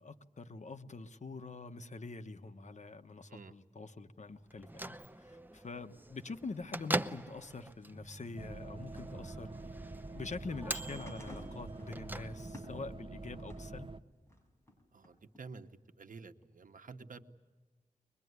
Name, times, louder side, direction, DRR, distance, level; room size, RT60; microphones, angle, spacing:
voice 1, 0.0-9.5 10.1-13.9, left 3 dB, 60° left, 7 dB, 1.3 m, -45 dB
Bell / Microwave oven, 4.5-12.8, right 1 dB, 15° right, 0.9 m, -43 dB
sound 1, 8.4-14.0, right 3 dB, 40° right, 1.1 m, -46 dB
FX The Gilligan Stumble, 10.7-13.8 14.3-15.4 16.4-16.5, left 1 dB, 20° left, 6.8 m, -53 dB
voice 2, 14.9-15.7 15.9-17.2, right 4 dB, 75° right, 7 dB, 1.2 m, -50 dB
23.0 x 22.5 x 9.6 m, 1.3 s
wide cardioid pair, 70°, 14 cm